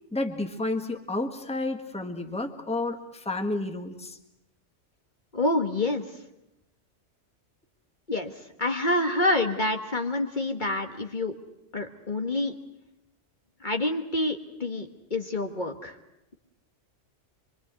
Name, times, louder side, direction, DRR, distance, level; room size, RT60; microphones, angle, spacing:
voice 1, 0.1-4.2, left 2 dB, 5° left, 5 dB, 1.6 m, -31 dB
voice 2, 5.3-6.0 8.1-8.3 8.6-11.3 11.7-12.5 13.6-15.9, left 2 dB, 40° left, 5 dB, 1.6 m, -27 dB
25.0 x 23.5 x 8.2 m, 0.86 s
omnidirectional pair, 1.2 m